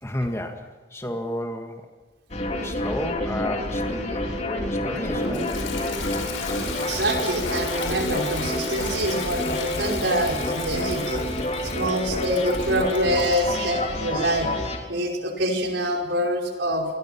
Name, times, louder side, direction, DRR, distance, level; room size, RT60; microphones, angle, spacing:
voice 1, 0.0-1.9 2.6-5.6, left 1 dB, 15° left, 4 dB, 1.9 m, -32 dB
sound 1, 2.3-14.8, left 1 dB, 35° left, 3.5 m, -28 dB
Toilet flush, 5.0-13.5, left 4 dB, 85° left, 5.1 m, -35 dB
voice 2, 6.8-11.2 11.6-14.5 14.8-16.9, equal, 65° right, 1 dB, 5.6 m, -25 dB
26.5 x 21.5 x 6.0 m, 1.4 s
head